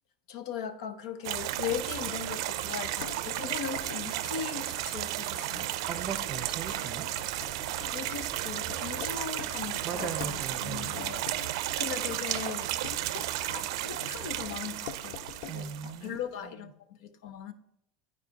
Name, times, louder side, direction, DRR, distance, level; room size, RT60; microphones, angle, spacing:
voice 1, 0.3-5.7 7.9-12.7 13.1-15.2 15.5-17.5, left 8 dB, 90° left, 10 dB, 0.8 m, -39 dB
sound 1, 1.2-16.0, right 14 dB, 85° right, 0.4 m, -34 dB
sound 2, 1.5-16.3, left 10 dB, 60° left, 0.4 m, -47 dB
sound 3, 5.8-11.3, equal, 40° left, 1.2 m, -51 dB
voice 2, 5.9-7.1 9.8-10.9 15.5-16.2, right 7 dB, 25° right, 8 dB, 0.7 m, -38 dB
12.0 x 4.8 x 2.9 m, 0.77 s
cardioid pair, 170°, 3 cm